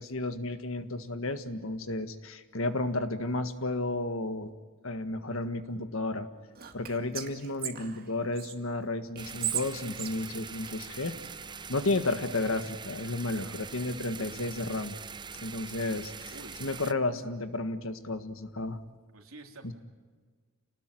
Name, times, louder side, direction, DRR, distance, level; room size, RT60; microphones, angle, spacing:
voice 1, 0.0-4.5 4.8-6.3 6.7-11.1 11.7-15.0 15.4-16.3 16.6-18.8 19.6-19.7, left 2 dB, 70° left, 9 dB, 1.7 m, -32 dB
Whispering, 6.5-8.5 9.1-11.3, right 10 dB, 45° right, 2.3 m, -37 dB
sound 1, 9.2-16.9, right 5 dB, 20° right, 0.7 m, -43 dB
voice 2, 13.2-13.6 16.3-16.7 19.1-19.7, right 2 dB, 75° right, 3 dB, 3.4 m, -48 dB
28.5 x 19.5 x 9.2 m, 1.5 s
head